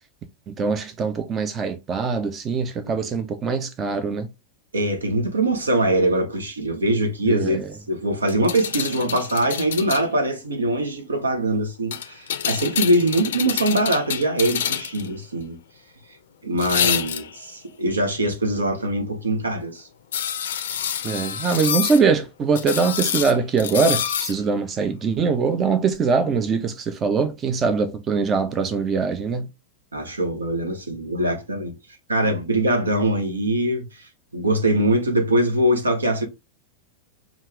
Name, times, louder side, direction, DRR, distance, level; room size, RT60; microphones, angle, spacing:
voice 1, 0.5-4.3 7.3-7.7 21.0-29.5, right 5 dB, 25° right, 0.5 m, -22 dB
voice 2, 4.7-15.6 16.4-19.9 29.9-31.7 32.1-34.1 34.3-36.3, right 1 dB, 75° right, 1.0 m, -22 dB
sound 1, 8.3-10.1 11.9-15.1 16.6-17.5 20.1-22.0 22.5-24.4 25.9-26.0, left 9 dB, 60° left, 0.5 m, -27 dB
5.3 x 2.4 x 3.4 m
figure-of-eight pair, 90°, 0 cm